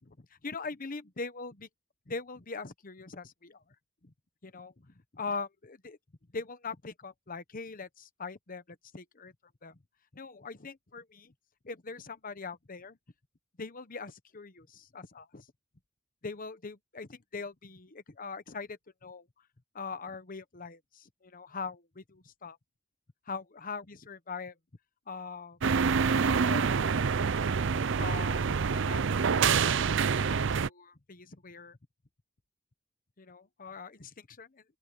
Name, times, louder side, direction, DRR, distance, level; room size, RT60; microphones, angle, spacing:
voice 1, 0.2-1.7 2.1-3.6 4.0-4.1 4.4-6.0 6.3-8.6 8.9-9.3 9.6-9.8 10.1-11.3 11.6-13.0 13.6-15.5 16.2-19.3 19.7-22.6 23.3-24.5 25.1-25.6 26.1-27.3 28.0-29.8 30.3-31.8 33.2-34.6, left 4 dB, 45° left, 1.1 m, -42 dB
sound 1, 25.6-30.7, right 5 dB, 65° right, 0.6 m, -26 dB
open air
head